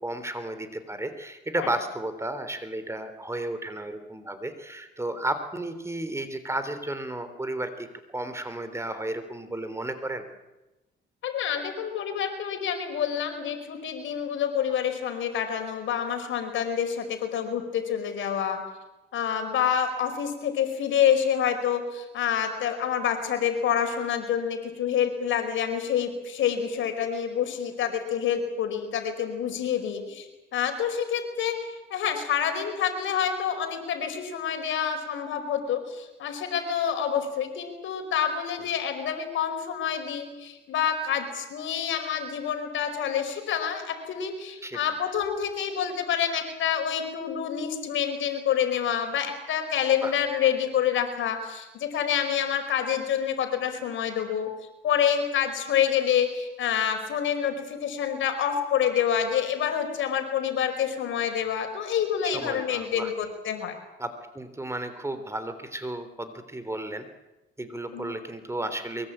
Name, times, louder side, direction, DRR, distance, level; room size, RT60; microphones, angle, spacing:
voice 1, 0.0-10.3 44.6-44.8 50.0-50.1 62.2-63.1 64.0-67.1 67.6-69.1, right 1 dB, 15° right, 10 dB, 3.4 m, -33 dB
voice 2, 11.2-18.6 19.1-54.5 54.8-63.8 67.9-68.1, left 8 dB, 75° left, 6 dB, 5.0 m, -27 dB
23.0 x 22.0 x 8.9 m, 1.0 s
cardioid pair, 90°, 20 cm